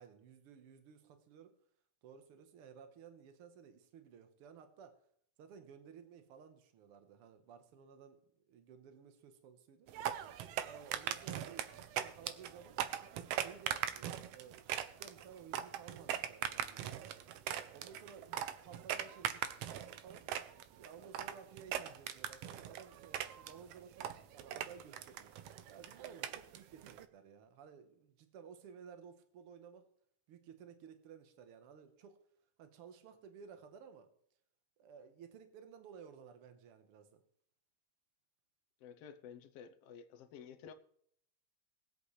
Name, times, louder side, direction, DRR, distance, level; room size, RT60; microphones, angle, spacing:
voice 1, 0.0-1.5 2.0-5.0 5.4-8.2 8.5-9.9 10.6-17.1 17.7-20.3 20.8-25.3 25.7-29.9 30.3-32.2 32.6-34.1 34.8-37.2, right 7 dB, 60° right, 1.8 m, -56 dB
sound 1, 9.9-27.1, right 10 dB, 80° right, 1.4 m, -41 dB
voice 2, 38.8-40.7, left 7 dB, 70° left, 1.6 m, -52 dB
21.5 x 8.0 x 3.3 m
omnidirectional pair, 3.5 m